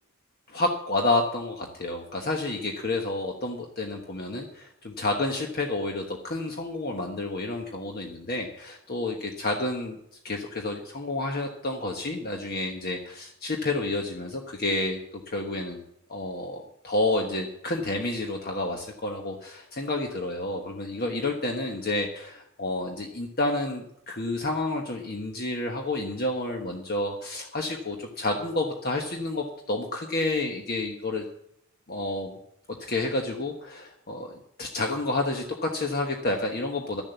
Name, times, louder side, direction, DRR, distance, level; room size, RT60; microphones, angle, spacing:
voice 1, 0.5-10.0 10.2-15.0 15.3-15.8 16.1-31.2 31.9-32.4 32.8-37.0, left 2 dB, 45° left, 2 dB, 1.2 m, -30 dB
12.0 x 7.3 x 8.2 m, 0.77 s
head